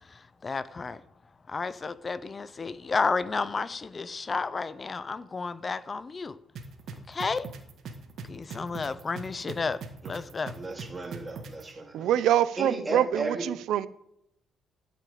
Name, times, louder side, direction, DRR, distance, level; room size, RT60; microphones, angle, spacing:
voice 1, 0.1-1.0 1.5-6.4 7.1-7.5 8.3-10.6, left 4 dB, 25° left, 0.6 m, -32 dB
sound 1, 6.6-11.6, right 5 dB, 55° right, 1.7 m, -40 dB
voice 2, 10.6-12.1 12.6-13.5, right 2 dB, 15° right, 2.2 m, -34 dB
voice 3, 11.9-13.9, right 11 dB, 70° right, 0.6 m, -25 dB
12.5 x 6.0 x 8.7 m
cardioid pair, 145°, 0 cm